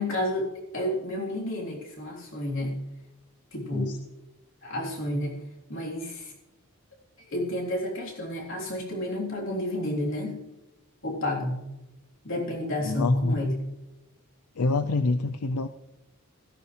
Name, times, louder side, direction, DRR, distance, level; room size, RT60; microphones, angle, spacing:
voice 1, 0.0-2.8 3.5-3.9 4.6-5.4 5.7-6.3 7.3-10.4 11.0-11.6 12.2-13.6, left 1 dB, 60° left, -2 dB, 3.6 m, -30 dB
voice 2, 12.8-13.3 14.6-15.7, left 3 dB, 80° left, 11 dB, 0.6 m, -26 dB
16.5 x 14.5 x 3.3 m, 0.97 s
head